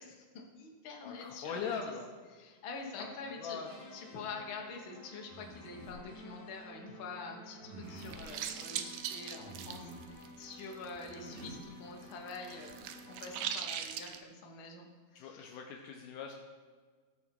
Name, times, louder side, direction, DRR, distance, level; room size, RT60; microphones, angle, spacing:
voice 1, 0.0-2.0 2.3-3.6 3.9-15.6, left 4 dB, 55° left, 1 dB, 1.4 m, -46 dB
voice 2, 1.0-2.1 3.0-3.7 15.2-16.3, left 6 dB, 75° left, 2 dB, 2.1 m, -41 dB
sound 1, 3.6-13.7, left 1 dB, 35° left, 1.6 m, -54 dB
sound 2, 5.3-6.0 7.6-8.2 9.4-10.1 11.0-11.6, right 2 dB, 30° right, 3.7 m, -49 dB
sound 3, 7.9-11.6 11.8-14.2, right 9 dB, 80° right, 1.9 m, -41 dB
17.5 x 6.3 x 4.6 m, 1.5 s
omnidirectional pair, 4.3 m